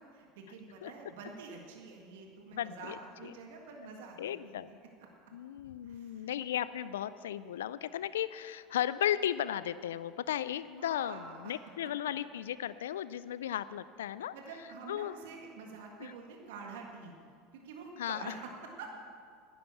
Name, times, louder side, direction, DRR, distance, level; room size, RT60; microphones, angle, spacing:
voice 1, 0.1-4.9 5.8-6.3 10.8-12.1 14.3-17.1 17.5-19.0, right 4 dB, 75° right, 1 dB, 1.7 m, -47 dB
voice 2, 2.5-3.3 4.2-4.7 5.3-14.3 14.9-15.2 16.0-16.1 18.0-18.3, left 11 dB, 85° left, 16 dB, 0.3 m, -35 dB
11.0 x 10.5 x 7.1 m, 2.2 s
hypercardioid pair, 85°, 0 cm